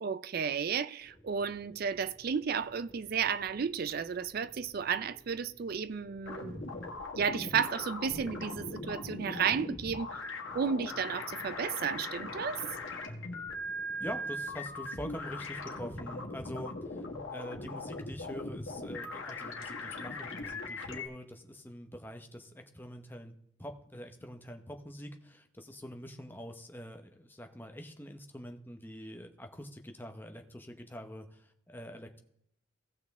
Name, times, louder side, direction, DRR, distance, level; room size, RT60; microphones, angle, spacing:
voice 1, 0.0-6.7 7.1-10.2 10.5-12.6, right 6 dB, 45° right, 0.4 m, -33 dB
sound 1, 1.0-17.0, equal, 25° left, 3.4 m, -56 dB
sound 2, 6.2-21.1, left 2 dB, 70° left, 1.6 m, -40 dB
voice 2, 14.0-17.0 17.3-23.3 23.6-32.2, equal, 10° left, 0.8 m, -45 dB
16.5 x 6.1 x 3.6 m
head